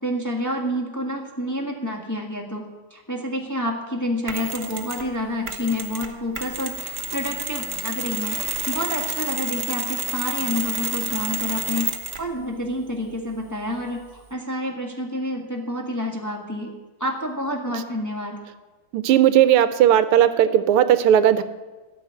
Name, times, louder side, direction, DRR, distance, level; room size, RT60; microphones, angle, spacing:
voice 1, 0.0-16.7 17.0-18.4, left 1 dB, 10° left, 0 dB, 1.4 m, -28 dB
Mechanisms, 4.3-5.1 5.5-12.3, right 3 dB, 40° right, 1.0 m, -30 dB
voice 2, 18.9-21.4, right 10 dB, 80° right, 13 dB, 1.5 m, -16 dB
13.5 x 6.5 x 9.6 m, 1.2 s
omnidirectional pair, 2.4 m